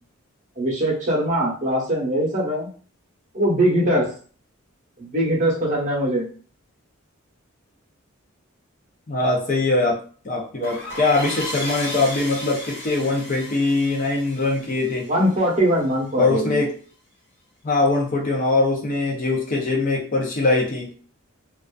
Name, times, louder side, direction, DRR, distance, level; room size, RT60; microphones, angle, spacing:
voice 1, 0.6-2.7 3.3-4.1 5.0-6.3 15.1-16.6, right 1 dB, 35° right, -4 dB, 0.8 m, -21 dB
voice 2, 9.1-15.1 16.2-16.7 17.6-20.9, left 3 dB, 40° left, -1 dB, 0.5 m, -22 dB
sound 1, 10.6-15.9, left 1 dB, 55° left, 0.9 m, -35 dB
2.4 x 2.3 x 2.3 m, 0.42 s
head